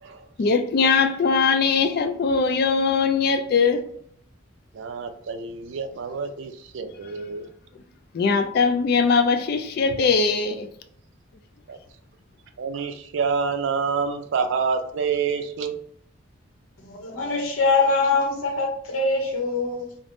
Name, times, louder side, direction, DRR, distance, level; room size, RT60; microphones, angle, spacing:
voice 1, 0.4-3.8 8.1-10.7, left 5 dB, 50° left, 0.3 m, -21 dB
voice 2, 4.7-7.5 11.7-11.8 12.6-15.8, right 5 dB, 60° right, 0.4 m, -27 dB
voice 3, 16.8-20.0, left 3 dB, 85° left, 0.8 m, -23 dB
3.3 x 2.0 x 2.6 m
head